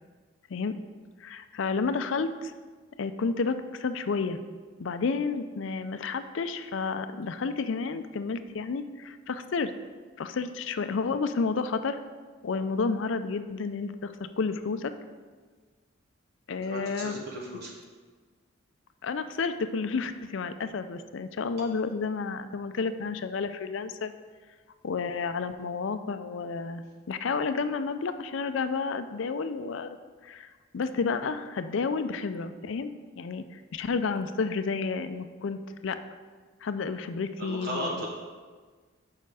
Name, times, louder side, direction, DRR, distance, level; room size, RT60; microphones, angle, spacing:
voice 1, 1.2-2.5 3.0-4.4 4.8-9.7 10.2-12.0 12.4-14.9 16.5-17.2 19.0-24.1 24.8-29.9 30.2-36.0 36.6-38.1, left 4 dB, 70° left, 10 dB, 0.4 m, -31 dB
voice 2, 16.6-17.7 37.4-38.1, right 1 dB, 50° right, -2 dB, 1.0 m, -35 dB
6.8 x 5.7 x 4.8 m, 1.5 s
head